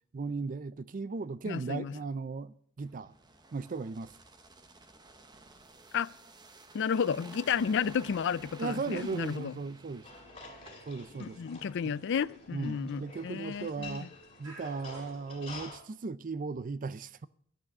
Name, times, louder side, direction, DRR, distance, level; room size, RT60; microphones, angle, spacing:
voice 1, 0.1-3.1 3.5-4.1 8.6-10.1 10.9-11.4 11.8-12.0 12.5-14.1 14.4-17.3, right 4 dB, 35° right, 0.4 m, -37 dB
voice 2, 1.5-1.9 5.9-6.1 6.7-9.5 11.2-14.1, left 7 dB, 55° left, 0.4 m, -32 dB
sound 1, 2.8-11.1 11.5-11.6, right 2 dB, 20° right, 0.8 m, -53 dB
sound 2, 8.7-15.9, right 1 dB, 90° right, 6.6 m, -57 dB
sound 3, 10.0-15.8, left 3 dB, 25° left, 2.6 m, -49 dB
11.0 x 9.0 x 6.0 m
head